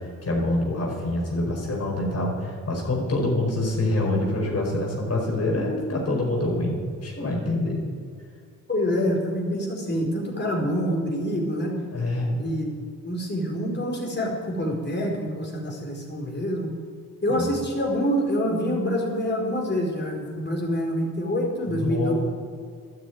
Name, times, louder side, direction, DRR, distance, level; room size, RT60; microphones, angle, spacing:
voice 1, 0.0-7.8 11.9-12.4 17.3-17.5 21.7-22.1, left 1 dB, 50° left, -1 dB, 4.9 m, -26 dB
voice 2, 8.7-11.8 12.4-12.7 13.0-16.7 17.2-22.1, equal, 35° left, -1 dB, 4.8 m, -26 dB
12.0 x 10.0 x 9.5 m, 2.2 s
cardioid pair, 75°, 32 cm